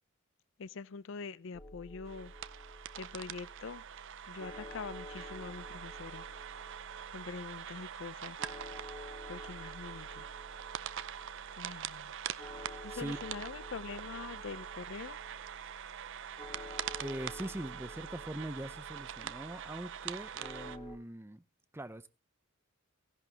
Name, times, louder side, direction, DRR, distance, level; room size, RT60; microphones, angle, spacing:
voice 1, 0.6-2.3 3.0-3.8 4.3-6.2 7.1-8.5 9.3-10.3 11.5-12.1 12.8-15.2, left 5 dB, 60° left, 0.5 m, -44 dB
sound 1, 1.5-21.0, left 1 dB, 25° left, 1.3 m, -51 dB
sound 2, 2.0-20.8, right 9 dB, 60° right, 0.5 m, -44 dB
voice 2, 17.0-21.4 21.7-22.1, right 1 dB, 10° right, 0.5 m, -42 dB
16.0 x 11.0 x 2.8 m
head